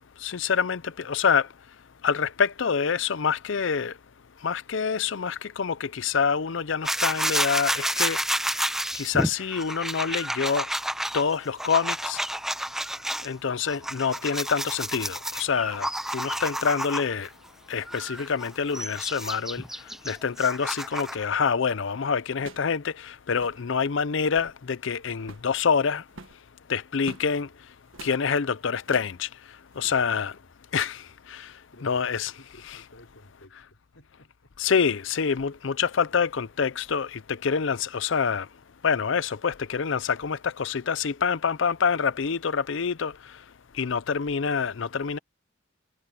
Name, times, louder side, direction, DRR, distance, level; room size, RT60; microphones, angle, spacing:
voice 1, 0.2-1.5 2.0-3.9 4.4-8.2 8.9-10.6 11.1-12.2 13.2-17.3 17.7-19.6 20.1-26.0 26.7-27.5 28.0-29.3 29.8-30.3 30.7-31.0 31.3-31.5 31.8-32.3 34.6-38.5 38.8-43.1 43.8-45.2, left 6 dB, 65° left, 0.6 m, -26 dB
sound 1, 6.8-13.3 13.7-17.3 17.9-21.3, right 1 dB, ahead, 0.7 m, -30 dB
sound 2, 21.4-21.6 22.3-22.8 23.0-23.1 23.3-23.6 24.1-24.6 25.2-25.5 26.1-27.3 27.9-28.2 28.8-29.2 29.7-29.9, right 3 dB, 80° right, 1.6 m, -46 dB
voice 2, 27.4-27.9 29.8-30.1 30.4-31.1 31.7-34.6 36.1-36.3, left 1 dB, 80° left, 4.3 m, -56 dB
head